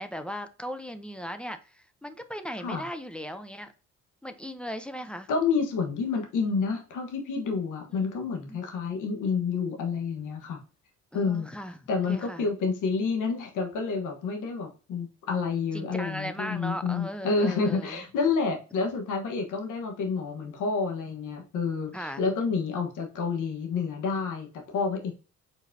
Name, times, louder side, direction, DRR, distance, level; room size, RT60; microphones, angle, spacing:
voice 1, 0.0-3.7 4.2-5.3 7.9-8.1 8.5-8.6 11.1-11.8 12.1-12.5 15.7-18.0 21.9-22.2, equal, 5° left, 9 dB, 0.6 m, -37 dB
voice 2, 5.3-10.6 11.1-11.5 11.9-25.1, left 4 dB, 85° left, 3 dB, 1.3 m, -29 dB
4.9 x 4.0 x 2.7 m, 0.35 s
cardioid pair, 90°, 30 cm